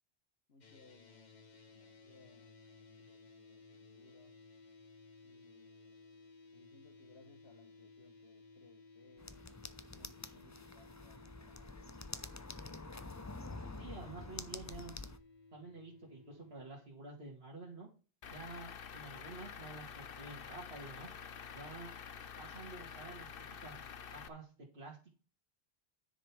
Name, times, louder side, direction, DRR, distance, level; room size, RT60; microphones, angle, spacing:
voice 1, 0.5-4.3 5.2-6.1 6.5-9.4 9.9-11.8, left 3 dB, 90° left, 7 dB, 1.5 m, -65 dB
sound 1, 0.6-16.7, left 3 dB, 45° left, 1.2 m, -59 dB
sound 2, 9.2-15.2, left 3 dB, 20° left, 0.6 m, -47 dB
voice 2, 13.8-14.9 15.5-17.9 18.3-21.1 21.5-21.9 22.4-25.1, right 3 dB, 75° right, -3 dB, 2.3 m, -50 dB
Truck / Idling, 18.2-24.3, left 7 dB, 65° left, 1.0 m, -48 dB
9.9 x 7.5 x 3.5 m, 0.35 s
omnidirectional pair, 1.1 m